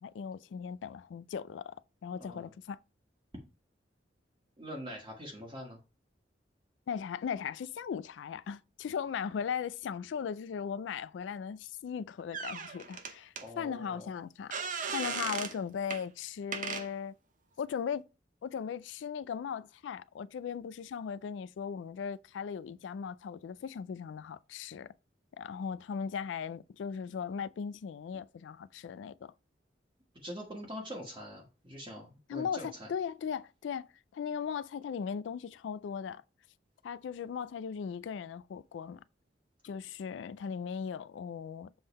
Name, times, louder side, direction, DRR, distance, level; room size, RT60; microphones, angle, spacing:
voice 1, 0.0-2.8 6.9-14.5 14.9-17.1 17.6-18.0 18.4-24.9 25.4-29.3 32.3-33.9 34.1-36.2 36.8-39.0 39.6-41.8, left 7 dB, 85° left, 0.3 m, -38 dB
voice 2, 2.2-2.5 4.6-5.8 13.4-14.1 30.1-32.9, equal, 25° right, 1.3 m, -44 dB
sound 1, 12.3-13.4 14.5-15.6 15.9-16.0 16.5-16.9, right 5 dB, 45° right, 0.8 m, -37 dB
7.0 x 3.8 x 4.1 m
head